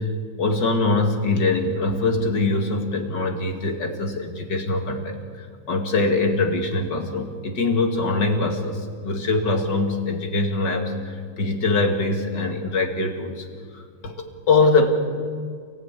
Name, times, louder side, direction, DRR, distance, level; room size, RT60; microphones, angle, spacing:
voice 1, 0.0-13.5 13.7-14.9, left 3 dB, 55° left, 5 dB, 2.9 m, -23 dB
29.5 x 14.5 x 9.9 m, 2.1 s
omnidirectional pair, 2.4 m